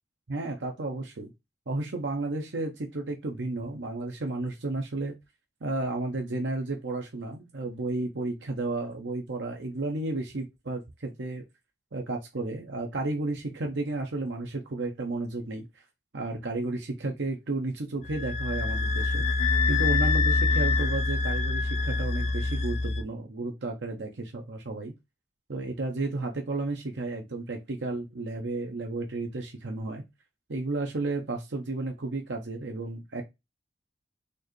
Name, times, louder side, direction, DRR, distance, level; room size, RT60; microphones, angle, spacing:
voice 1, 0.3-1.3 1.7-5.1 5.6-11.4 11.9-15.8 16.1-19.2 19.7-24.9 25.5-30.0 30.5-33.2, right 2 dB, 80° right, 2 dB, 0.8 m, -32 dB
sound 1, 18.0-23.0, left 3 dB, 40° left, 0.5 m, -25 dB
4.4 x 2.7 x 3.0 m, 0.21 s
head